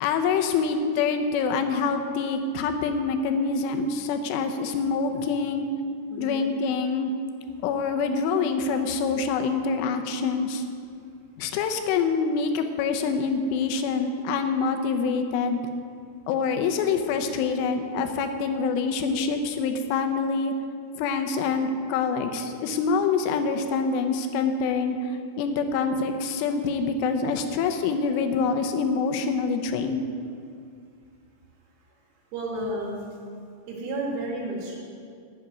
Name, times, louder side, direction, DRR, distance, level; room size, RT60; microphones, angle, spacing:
voice 1, 0.0-5.6 6.2-7.1 7.6-10.6 11.4-15.6 16.3-20.5 21.0-30.0, left 5 dB, 80° left, 5 dB, 3.1 m, -26 dB
voice 2, 6.1-6.4 32.3-33.0 33.7-34.8, right 1 dB, 70° right, -2 dB, 4.5 m, -31 dB
8.8 x 8.5 x 9.3 m, 2.3 s
omnidirectional pair, 6.0 m